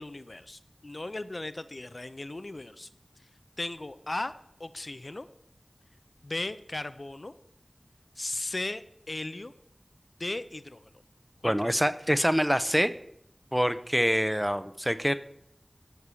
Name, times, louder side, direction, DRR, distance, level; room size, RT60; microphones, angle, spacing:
voice 1, 0.0-2.9 3.6-4.3 4.6-5.3 6.2-7.3 8.2-9.5 10.2-10.9 11.4-11.8, left 2 dB, 55° left, 12 dB, 0.5 m, -36 dB
voice 2, 11.4-12.9 13.5-15.1, equal, 5° right, 12 dB, 0.6 m, -25 dB
12.5 x 4.8 x 6.9 m, 0.74 s
wide cardioid pair, 55°, 0 cm